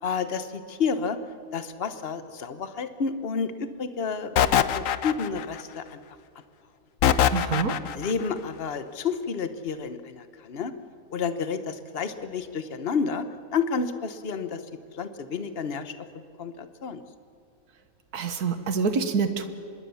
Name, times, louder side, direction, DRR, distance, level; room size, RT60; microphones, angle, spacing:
voice 1, 0.0-1.2 1.5-6.0 7.9-10.7 11.1-13.3 13.5-14.6 14.9-16.1 16.4-17.0, left 5 dB, 45° left, 10 dB, 1.3 m, -30 dB
sound 1, 4.4-5.6 7.0-8.1, left 9 dB, 65° left, 1.1 m, -22 dB
voice 2, 7.3-7.8 18.1-19.5, right 5 dB, 85° right, 9 dB, 1.8 m, -26 dB
25.5 x 21.0 x 7.1 m, 2.7 s
omnidirectional pair, 1.6 m